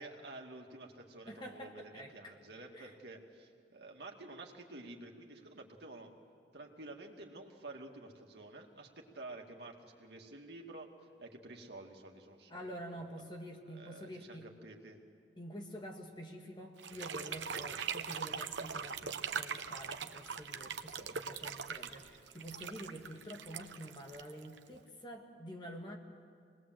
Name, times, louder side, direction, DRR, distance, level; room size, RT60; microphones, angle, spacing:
voice 1, 0.0-6.1 6.5-10.9 11.2-12.7 12.9-13.2 13.7-15.0, right 2 dB, 65° right, 1 dB, 2.4 m, -50 dB
voice 2, 1.3-2.3 2.7-2.9 12.5-14.5 15.4-26.0, equal, 25° left, 2 dB, 1.9 m, -48 dB
sound 1, 16.8-24.8, right 6 dB, 90° right, 0.9 m, -41 dB
25.5 x 20.5 x 7.8 m, 2.2 s
head